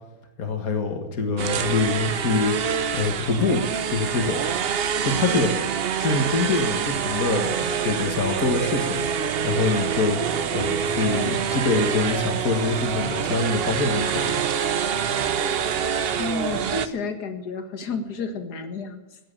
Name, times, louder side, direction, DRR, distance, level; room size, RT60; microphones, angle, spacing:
voice 1, 0.4-4.4 5.1-5.5 6.0-14.5, left 4 dB, 60° left, 5 dB, 2.1 m, -25 dB
sound 1, 1.4-16.9, right 7 dB, 50° right, 0.7 m, -26 dB
voice 2, 16.2-19.2, left 4 dB, 80° left, 7 dB, 2.1 m, -31 dB
18.0 x 7.6 x 8.9 m, 1.1 s
omnidirectional pair, 1.7 m